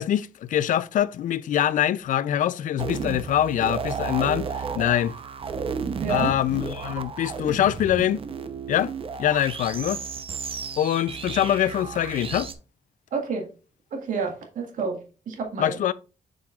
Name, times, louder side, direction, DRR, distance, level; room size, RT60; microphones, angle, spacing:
voice 1, 0.0-5.2 6.1-8.2 8.7-8.9 9.2-10.0 10.8-12.5 15.6-15.9, left 11 dB, 80° left, 0.4 m, -24 dB
sound 1, 2.8-12.5, right 6 dB, 45° right, 0.7 m, -33 dB
voice 2, 6.0-6.3 13.1-13.5 13.9-15.0 15.3-15.8, right 4 dB, 85° right, 1.8 m, -29 dB
7.5 x 6.2 x 2.4 m
cardioid pair, 110°, 13 cm